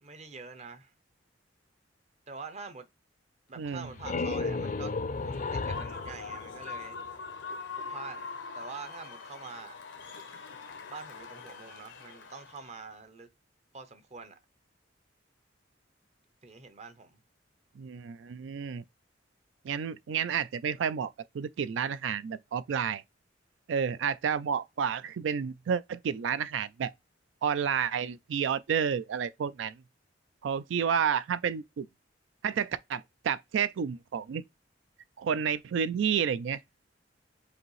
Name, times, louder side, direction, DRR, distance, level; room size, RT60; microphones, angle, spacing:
voice 1, 0.0-0.9 2.3-2.8 3.5-4.9 5.2-7.2 7.9-8.3 8.5-9.8 10.9-13.3 13.7-14.4 16.4-17.2, right 4 dB, 35° right, 0.6 m, -45 dB
voice 2, 3.6-3.9 17.8-18.8 19.6-23.0 23.7-26.9 27.4-29.7 30.4-31.9 32.4-34.4 35.2-36.6, right 7 dB, 80° right, 0.3 m, -30 dB
sound 1, 3.7-7.3, left 3 dB, 45° left, 0.4 m, -34 dB
Human voice / Cheering / Applause, 5.1-12.8, left 4 dB, 85° left, 0.8 m, -43 dB
5.0 x 2.7 x 3.1 m
head